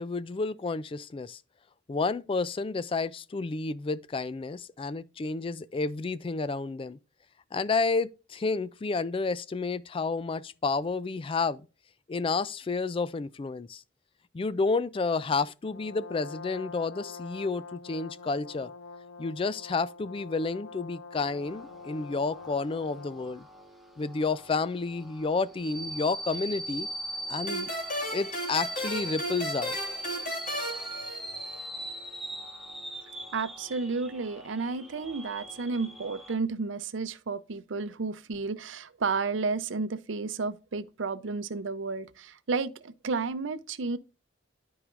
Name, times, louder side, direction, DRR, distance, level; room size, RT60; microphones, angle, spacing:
voice 1, 0.0-1.4 1.9-7.0 7.5-11.7 12.1-13.8 14.3-18.7 19.2-23.5 24.0-26.9 27.3-27.7 28.1-29.8, left 4 dB, 30° left, 0.3 m, -30 dB
Brass instrument, 15.6-23.4, left 4 dB, 85° left, 1.0 m, -45 dB
sound 1, 21.1-36.4, right 1 dB, ahead, 0.9 m, -40 dB
sound 2, 27.5-31.8, equal, 45° left, 3.0 m, -35 dB
voice 2, 33.3-44.0, right 4 dB, 90° right, 0.6 m, -32 dB
13.0 x 4.8 x 2.5 m
head